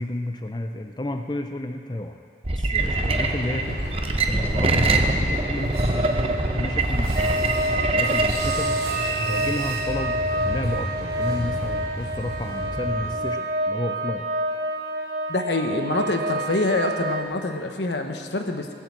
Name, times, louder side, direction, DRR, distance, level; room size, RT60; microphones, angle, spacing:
voice 1, 0.0-2.2 2.5-3.8 4.3-6.2 6.6-7.5 7.8-8.8 9.3-14.3, left 1 dB, 25° left, 6 dB, 0.5 m, -31 dB
sound 1, 2.4-8.5, right 2 dB, 30° right, 0.8 m, -24 dB
sound 2, 2.7-13.2, equal, 80° right, 3.8 m, -31 dB
sound 3, 7.1-17.2, right 1 dB, 60° right, 1.2 m, -28 dB
voice 2, 15.3-18.7, left 2 dB, 80° left, 5 dB, 1.2 m, -25 dB
17.0 x 7.5 x 7.5 m, 2.4 s
head